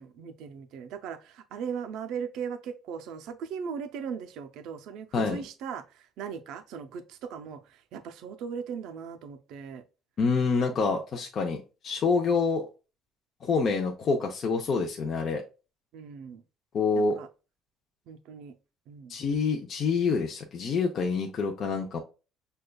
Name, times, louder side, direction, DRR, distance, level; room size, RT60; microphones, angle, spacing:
voice 1, 0.0-9.8 15.9-16.4 17.0-17.3 18.1-18.5 18.9-19.1, right 7 dB, 75° right, 0.4 m, -38 dB
voice 2, 5.1-5.5 10.2-12.7 13.4-15.4 16.7-17.2 19.1-22.0, left 4 dB, 45° left, 0.5 m, -27 dB
6.3 x 2.3 x 2.2 m
cardioid pair, 145°, 0 cm